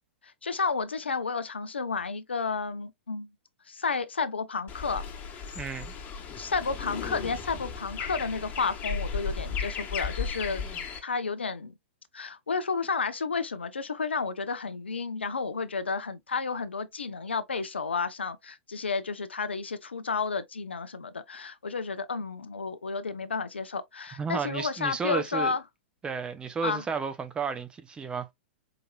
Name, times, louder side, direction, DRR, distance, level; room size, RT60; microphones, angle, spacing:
voice 1, 0.2-3.3 3.7-5.0 6.4-10.6 11.0-11.7 12.1-25.6 26.6-26.8, left 4 dB, 85° left, 0.5 m, -31 dB
sound 1, 4.7-11.0, left 6 dB, 30° left, 1.1 m, -35 dB
voice 2, 5.6-5.9 24.2-25.5 26.0-28.3, right 5 dB, 15° right, 0.7 m, -32 dB
4.8 x 2.9 x 2.2 m
figure-of-eight pair, 110°, 6 cm